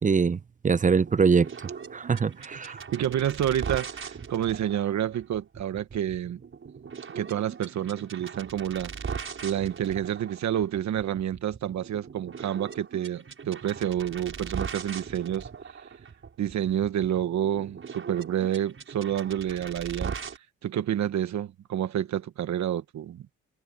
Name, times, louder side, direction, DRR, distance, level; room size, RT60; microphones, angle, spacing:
voice 1, 0.0-1.5 1.9-2.8, right 5 dB, 25° right, 0.6 m, -23 dB
sound 1, 0.9-20.4, right 6 dB, 45° right, 5.9 m, -40 dB
voice 2, 2.9-6.4 7.1-15.5 16.4-20.1 20.6-23.3, right 10 dB, 65° right, 1.4 m, -29 dB
cardioid pair, 90°, 30 cm